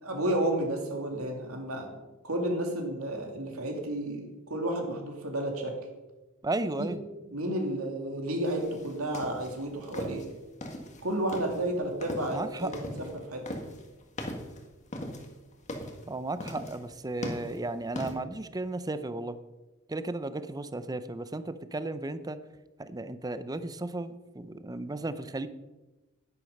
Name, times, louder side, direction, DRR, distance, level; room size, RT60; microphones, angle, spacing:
voice 1, 0.0-1.9 2.2-5.7 6.8-6.9 7.3-10.2 11.0-13.4, right 1 dB, 85° right, 2 dB, 2.7 m, -31 dB
voice 2, 6.4-7.0 12.3-12.7 13.0-13.2 16.1-19.4 19.9-22.4 22.8-25.5, right 2 dB, 20° right, 12 dB, 0.6 m, -34 dB
sound 1, 8.4-18.1, left 1 dB, 35° left, 1.7 m, -39 dB
10.5 x 10.5 x 5.4 m, 1.1 s
head